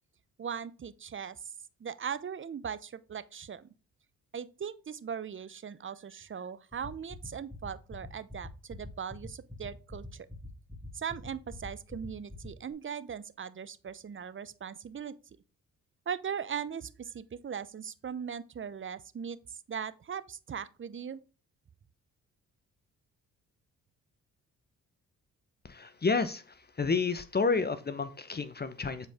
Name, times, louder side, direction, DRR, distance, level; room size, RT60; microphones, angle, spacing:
voice 1, 0.4-1.5 1.8-3.7 4.3-10.3 10.9-15.1 16.1-21.2, right 7 dB, 35° right, 0.8 m, -39 dB
sound 1, 6.7-12.7, left 1 dB, ahead, 2.2 m, -43 dB
voice 2, 25.6-26.4 26.8-29.1, left 4 dB, 30° left, 0.9 m, -30 dB
7.8 x 4.5 x 3.5 m
supercardioid pair, 60°, 33 cm